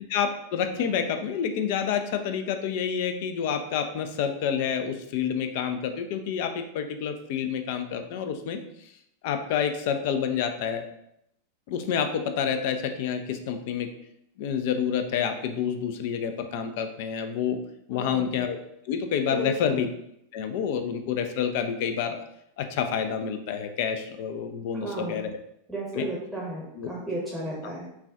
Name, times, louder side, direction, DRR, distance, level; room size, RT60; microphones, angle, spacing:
voice 1, 0.1-8.6 9.2-10.9 11.7-13.9 14.4-17.6 17.9-18.6 18.9-19.9 20.3-22.2 22.6-25.3 25.9-26.1 26.8-26.9, left 7 dB, 50° left, 7 dB, 0.4 m, -28 dB
voice 2, 17.9-18.3 19.3-19.7 24.8-25.3 25.7-27.9, right 1 dB, ahead, -6 dB, 0.9 m, -34 dB
5.5 x 2.3 x 2.4 m, 0.77 s
figure-of-eight pair, 90°, 0 cm